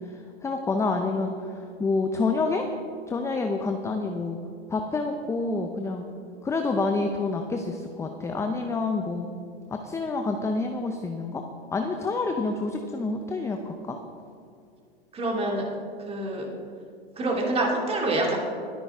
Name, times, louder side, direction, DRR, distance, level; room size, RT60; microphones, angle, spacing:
voice 1, 0.1-2.6 3.1-4.4 4.7-6.1 6.4-9.3 9.7-11.4 11.7-14.0, left 3 dB, 10° left, 4 dB, 0.6 m, -28 dB
voice 2, 15.1-15.7 16.0-16.5 17.2-18.4, right 2 dB, 20° right, 0 dB, 2.4 m, -26 dB
20.5 x 9.4 x 3.6 m, 2.3 s
hypercardioid pair, 115°, 31 cm